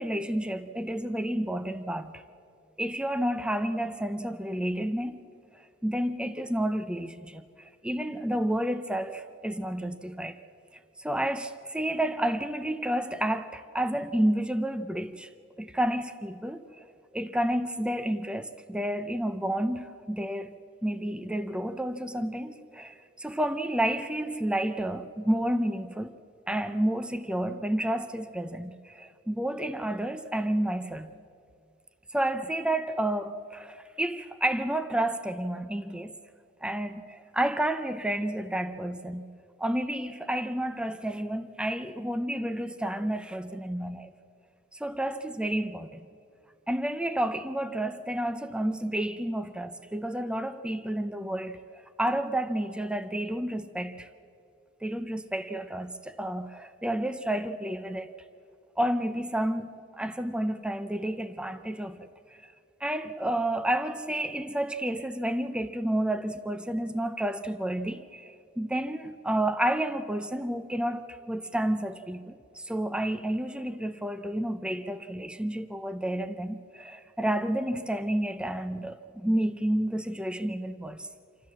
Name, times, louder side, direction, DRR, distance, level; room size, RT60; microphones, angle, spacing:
voice 1, 0.0-2.2 2.8-5.2 5.8-10.4 11.0-15.3 15.6-16.8 17.1-20.6 20.8-26.1 26.5-31.1 32.1-36.1 36.6-44.1 44.7-46.1 46.7-54.1 54.8-58.1 58.8-62.1 62.4-62.5 62.8-81.1, right 1 dB, 5° right, 0.6 m, -30 dB
27.5 x 13.5 x 7.4 m
head